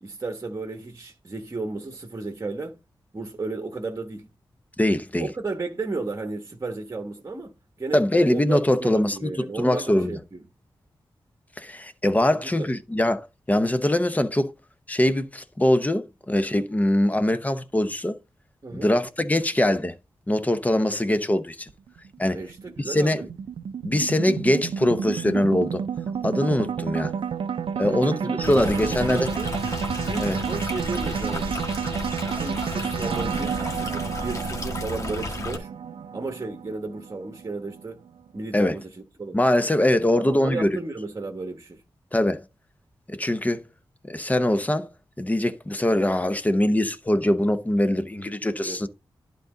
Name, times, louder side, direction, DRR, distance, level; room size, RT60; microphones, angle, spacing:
voice 1, 0.0-2.8 3.1-4.3 5.2-7.5 7.8-10.4 12.3-12.7 18.6-18.9 22.3-23.3 27.8-29.5 30.0-31.6 32.2-35.7 36.1-38.0 38.3-39.4 40.2-41.8 48.6-48.8, right 3 dB, 35° right, 1.2 m, -34 dB
voice 2, 4.8-5.3 7.9-10.2 11.6-14.5 14.9-18.2 18.7-19.9 20.3-21.7 22.2-22.4 22.8-23.2 23.8-25.8 26.2-27.1 27.7-29.3 30.2-30.4 38.5-38.7 39.3-40.7 42.1-42.4 43.1-43.6 44.1-44.9 45.2-48.9, left 1 dB, 15° left, 0.7 m, -22 dB
sound 1, 21.7-38.1, right 7 dB, 75° right, 0.4 m, -30 dB
Stream, 28.4-35.6, left 3 dB, 35° left, 1.6 m, -33 dB
11.0 x 3.9 x 3.9 m
wide cardioid pair, 90°, 9 cm